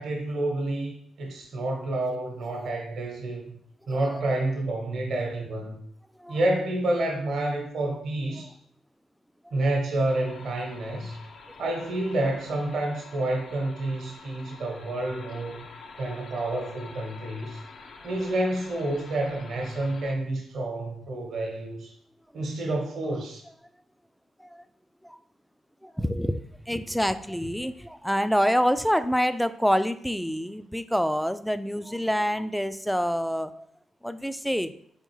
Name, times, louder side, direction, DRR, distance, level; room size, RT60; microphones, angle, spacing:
voice 1, 0.0-3.6 3.9-5.7 6.3-8.5 9.5-11.2 11.6-15.6 16.0-17.6 18.0-21.9 22.3-23.4, right 1 dB, 65° right, 1 dB, 0.9 m, -29 dB
sound 1, 10.1-20.2, left 4 dB, 60° left, 0.5 m, -47 dB
voice 2, 25.8-33.7 34.0-34.7, equal, ahead, 12 dB, 0.3 m, -27 dB
3.8 x 3.5 x 3.0 m, 0.66 s
hypercardioid pair, 45°, 0 cm